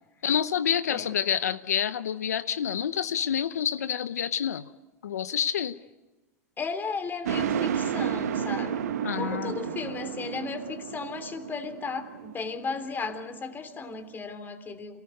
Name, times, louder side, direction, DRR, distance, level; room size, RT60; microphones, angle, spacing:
voice 1, 0.2-4.7 5.0-5.8 9.0-9.5, left 9 dB, 90° left, 13 dB, 0.8 m, -28 dB
voice 2, 6.6-8.8 9.1-15.0, left 4 dB, 25° left, 8 dB, 3.2 m, -35 dB
sound 1, 7.3-14.0, right 8 dB, 80° right, 1.4 m, -32 dB
27.0 x 19.0 x 9.4 m, 1.1 s
hypercardioid pair, 105°, 8 cm